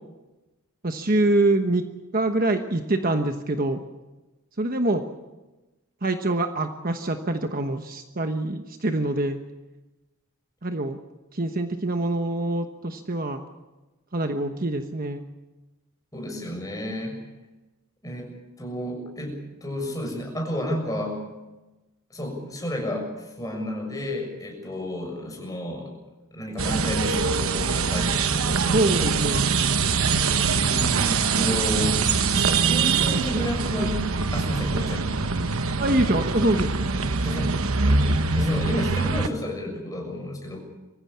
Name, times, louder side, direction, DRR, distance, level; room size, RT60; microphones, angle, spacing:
voice 1, 0.8-1.8 2.1-3.8 4.6-5.0 6.0-9.4 10.6-11.0 11.3-13.4 14.1-15.2 28.7-29.4 31.8-32.0 33.1-33.5 33.8-33.9 35.8-36.7, right 2 dB, 40° right, 6 dB, 1.2 m, -25 dB
voice 2, 16.1-17.2 18.0-18.3 18.6-21.2 22.1-25.9 26.3-29.2 30.5-32.0 32.4-34.1 34.3-35.1 37.2-37.6 37.8-40.6, equal, 15° left, 1 dB, 6.7 m, -31 dB
sound 1, 26.6-39.3, right 4 dB, 70° right, 1.1 m, -23 dB
24.0 x 15.0 x 8.6 m, 1.1 s
head